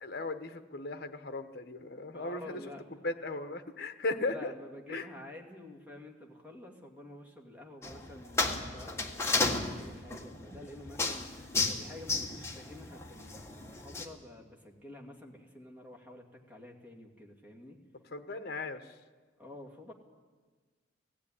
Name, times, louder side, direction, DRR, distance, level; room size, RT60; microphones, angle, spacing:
voice 1, 0.0-2.6 3.0-4.5 4.9-5.1 11.6-11.8 18.1-18.9, left 3 dB, 50° left, 9 dB, 1.2 m, -37 dB
voice 2, 2.1-2.8 4.2-17.8 19.4-19.9, left 1 dB, 10° right, 0 dB, 2.3 m, -49 dB
sound 1, 7.8-14.1, left 3 dB, 15° left, 1.4 m, -34 dB
17.0 x 15.5 x 9.9 m, 1.4 s
head